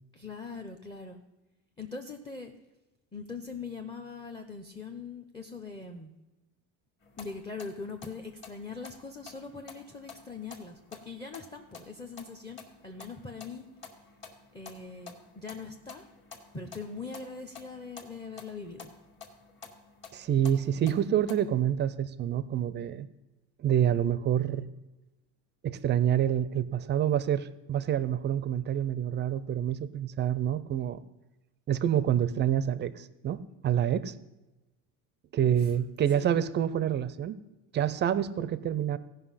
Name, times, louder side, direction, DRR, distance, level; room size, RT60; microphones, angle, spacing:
voice 1, 0.1-1.2 1.8-2.5 3.1-6.1 7.2-13.7 14.5-16.0 16.5-18.9 35.4-35.7 36.1-36.3, left 4 dB, 10° left, 4 dB, 0.7 m, -42 dB
sound 1, 7.0-21.4, left 5 dB, 30° left, 1.7 m, -51 dB
voice 2, 20.1-23.1 23.6-24.7 25.6-31.0 31.7-34.1 35.3-37.4 37.7-39.0, right 10 dB, 30° right, 16 dB, 0.5 m, -27 dB
16.0 x 5.4 x 5.6 m, 1.0 s
cardioid pair, 135°, 38 cm